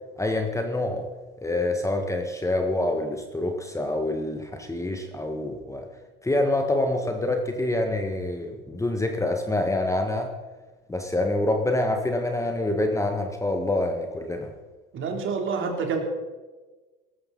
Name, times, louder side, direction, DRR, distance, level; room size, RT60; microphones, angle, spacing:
voice 1, 0.2-1.1 1.4-5.9 6.2-10.3 10.9-14.5, left 1 dB, 10° left, 4 dB, 1.7 m, -26 dB
voice 2, 14.9-16.0, right 5 dB, 45° right, 3 dB, 3.3 m, -27 dB
18.0 x 13.5 x 4.2 m, 1.3 s
hypercardioid pair, 80°, 29 cm